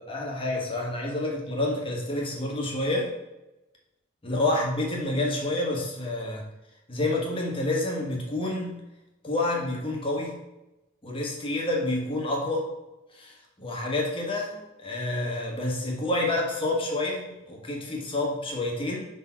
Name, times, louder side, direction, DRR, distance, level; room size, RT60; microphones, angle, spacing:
voice 1, 0.0-3.1 4.2-6.4 6.9-8.8 9.2-10.4 11.0-12.6 13.1-19.1, left 2 dB, 30° left, -1 dB, 1.4 m, -28 dB
5.7 x 4.1 x 5.7 m, 0.98 s
head